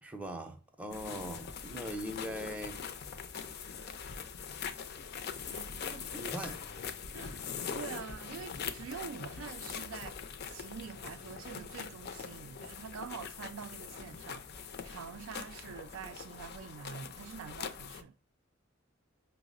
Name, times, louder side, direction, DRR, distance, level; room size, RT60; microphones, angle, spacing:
voice 1, 0.0-2.8 6.1-6.6, equal, 5° right, 0.5 m, -41 dB
sound 1, 0.9-18.0, left 6 dB, 50° left, 0.4 m, -42 dB
voice 2, 5.5-6.2 7.1-10.2 10.5-18.1, right 7 dB, 75° right, 0.3 m, -46 dB
5.5 x 2.0 x 2.4 m
head